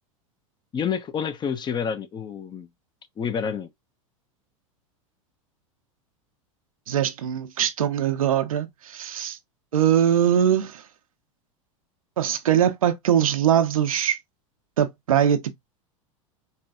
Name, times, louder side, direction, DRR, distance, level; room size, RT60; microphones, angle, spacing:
voice 1, 0.7-2.7 3.2-3.7, left 7 dB, 25° left, 0.6 m, -28 dB
voice 2, 6.9-9.4 9.7-10.8 12.2-14.2 14.8-15.5, right 9 dB, 90° right, 0.6 m, -22 dB
4.1 x 2.2 x 2.4 m
hypercardioid pair, 100°, 17 cm